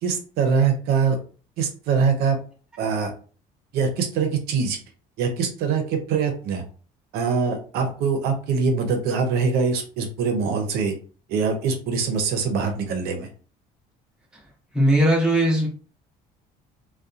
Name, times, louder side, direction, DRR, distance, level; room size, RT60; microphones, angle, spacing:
voice 1, 0.0-1.2 1.6-2.4 2.8-3.1 3.7-4.8 5.2-6.6 7.1-10.9 11.3-13.3, right 5 dB, 75° right, 0.6 m, -23 dB
voice 2, 14.7-15.7, right 1 dB, 5° right, 0.7 m, -18 dB
2.7 x 2.1 x 2.4 m
cardioid pair, 160°, 16 cm